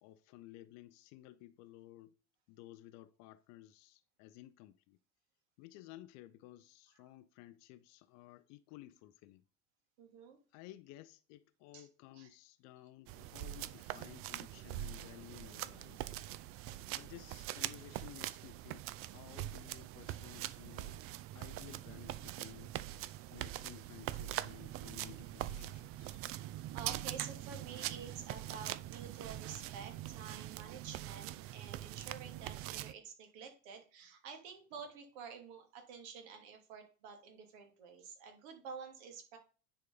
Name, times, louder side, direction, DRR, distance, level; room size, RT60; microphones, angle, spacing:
voice 1, 0.0-2.2 2.5-5.0 5.6-9.4 10.5-16.2 16.9-18.9 19.1-21.0 21.3-22.7 23.3-26.2, left 15 dB, 40° left, 0.7 m, -55 dB
voice 2, 10.0-10.4 11.7-11.9 12.1-12.3 13.9-14.0 15.9-16.0 16.7-16.8 26.3-39.4, right 6 dB, 55° right, 2.8 m, -50 dB
sound 1, 13.1-32.9, right 14 dB, 35° right, 0.6 m, -43 dB
9.4 x 5.0 x 5.3 m
figure-of-eight pair, 80°, 41 cm